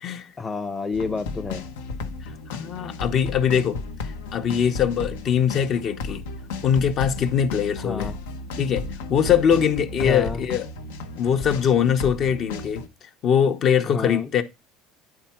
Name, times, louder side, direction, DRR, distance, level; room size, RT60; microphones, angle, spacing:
voice 1, 0.4-1.7 7.8-8.1 10.0-10.4 13.9-14.3, left 4 dB, 20° left, 0.7 m, -29 dB
sound 1, 0.9-12.9, left 3 dB, 85° left, 0.7 m, -34 dB
voice 2, 2.5-3.8 4.3-6.2 6.6-8.1 8.6-10.7 11.2-12.8 13.2-14.4, left 8 dB, 50° left, 0.8 m, -22 dB
9.0 x 3.6 x 4.3 m
hypercardioid pair, 80°, 0 cm